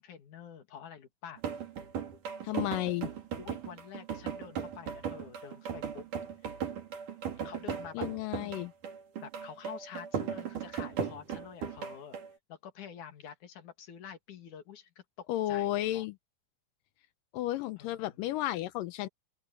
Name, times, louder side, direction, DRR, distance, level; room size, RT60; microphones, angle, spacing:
voice 1, 0.0-1.4 3.4-6.1 7.4-8.1 8.4-8.6 9.2-12.2 12.5-16.1 17.8-18.2, left 8 dB, 65° left, 3.4 m, -48 dB
sound 1, 1.4-12.3, right 7 dB, 70° right, 4.2 m, -37 dB
voice 2, 2.4-3.1 7.9-8.7 15.3-16.1 17.3-19.1, left 15 dB, 85° left, 2.4 m, -33 dB
open air
omnidirectional pair, 3.8 m